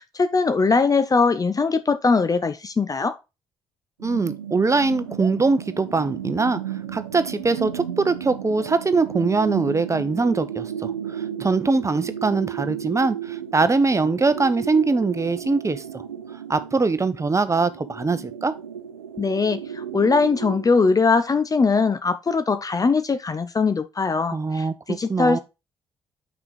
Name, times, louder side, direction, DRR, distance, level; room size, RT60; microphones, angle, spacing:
voice 1, 0.0-3.2 19.2-25.4, left 4 dB, 30° left, 0.7 m, -21 dB
voice 2, 4.0-16.0 16.5-18.5 24.3-25.4, right 3 dB, 25° right, 0.9 m, -22 dB
sound 1, 4.0-20.7, right 9 dB, 90° right, 0.6 m, -34 dB
6.1 x 5.2 x 4.2 m
hypercardioid pair, 45°, 12 cm